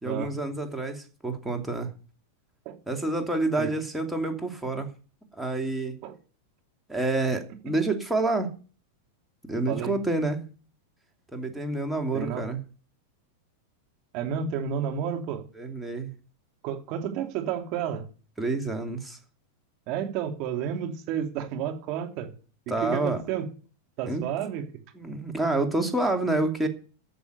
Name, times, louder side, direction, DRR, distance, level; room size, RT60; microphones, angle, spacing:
voice 1, 0.0-1.9 2.9-4.9 5.3-6.0 6.9-8.5 9.5-10.4 11.3-12.6 15.6-16.1 18.4-19.2 22.7-23.2 24.1-24.3 24.9-26.7, right 2 dB, 5° right, 3 dB, 2.7 m, -28 dB
voice 2, 12.1-12.4 14.1-15.4 16.6-18.0 19.9-22.3 22.7-23.5 24.0-24.6, right 8 dB, 50° right, 5 dB, 2.9 m, -31 dB
11.0 x 7.0 x 9.5 m, 0.38 s
hypercardioid pair, 110°, 0 cm